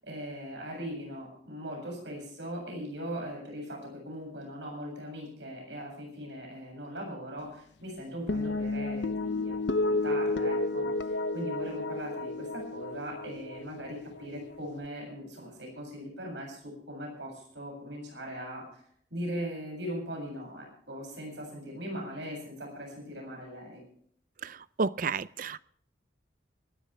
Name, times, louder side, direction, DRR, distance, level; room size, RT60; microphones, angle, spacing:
voice 1, 0.0-18.8 19.1-23.8, equal, 70° right, 1 dB, 7.5 m, -40 dB
sound 1, 8.3-14.9, left 2 dB, 65° left, 0.7 m, -32 dB
voice 2, 24.4-25.6, right 4 dB, 45° right, 18 dB, 0.5 m, -32 dB
25.0 x 12.0 x 3.4 m, 0.64 s
head